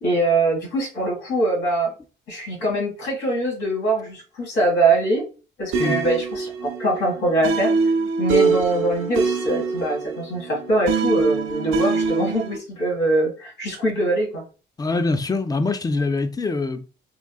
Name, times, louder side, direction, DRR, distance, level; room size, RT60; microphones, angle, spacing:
voice 1, 0.0-1.9 2.3-5.2 5.6-7.7 8.2-14.4, right 2 dB, 90° left, 1.8 m, -23 dB
sound 1, 5.7-12.6, right 4 dB, 85° right, 0.6 m, -24 dB
voice 2, 14.8-16.9, left 3 dB, 20° left, 0.4 m, -24 dB
3.8 x 2.7 x 2.3 m
cardioid pair, 90°, 20 cm